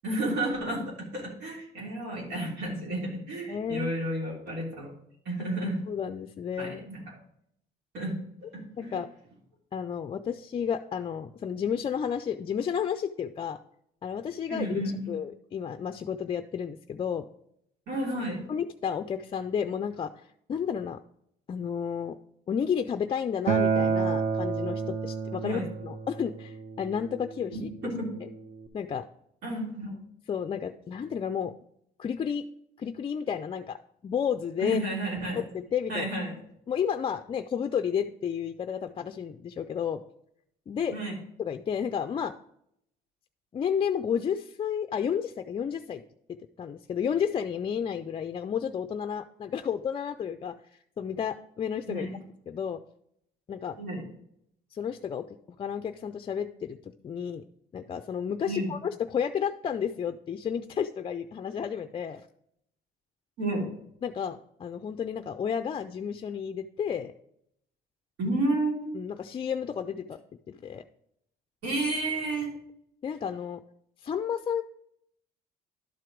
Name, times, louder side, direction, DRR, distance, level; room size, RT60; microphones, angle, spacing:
voice 1, 0.0-4.9 5.2-5.8 6.6-7.0 7.9-8.2 8.5-8.9 14.5-15.1 17.9-18.4 25.4-25.6 27.5-28.1 29.4-30.0 34.6-35.4 35.9-36.4 40.9-41.2 51.9-52.2 53.8-54.0 58.5-58.7 63.4-63.7 68.2-69.0 71.6-72.5, right 1 dB, 85° right, -3 dB, 3.5 m, -31 dB
voice 2, 3.5-3.9 5.9-6.9 8.8-9.1 9.7-13.6 14.0-17.3 18.5-20.2 20.5-21.0 21.5-22.2 22.5-27.6 28.7-29.0 30.3-31.5 32.0-32.4 32.8-33.8 34.0-34.8 35.3-36.1 36.7-40.0 40.7-40.9 41.4-42.3 43.5-46.0 46.6-50.5 51.0-52.1 52.5-52.8 53.5-53.8 54.7-55.2 55.6-57.4 57.7-62.3 64.0-67.1 68.9-70.2 70.5-70.8 73.0-73.6 74.0-74.6, left 7 dB, 30° left, 8 dB, 0.4 m, -31 dB
Acoustic guitar, 23.5-28.7, right 5 dB, 45° right, 1.0 m, -30 dB
11.5 x 4.5 x 5.1 m, 0.73 s
cardioid pair, 110°, 17 cm